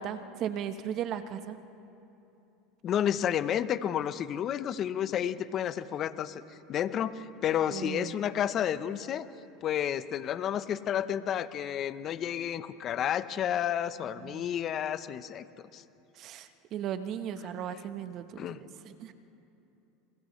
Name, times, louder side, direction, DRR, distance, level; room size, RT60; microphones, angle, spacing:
voice 1, 0.0-1.6 7.7-8.1 14.2-14.5 16.2-19.1, right 9 dB, 50° right, 9 dB, 1.2 m, -37 dB
voice 2, 2.8-6.4 6.7-9.3 9.6-15.4 15.7-15.8 18.4-18.6, left 10 dB, 45° left, 13 dB, 0.9 m, -31 dB
29.0 x 28.5 x 3.3 m, 2.9 s
hypercardioid pair, 95°, 0 cm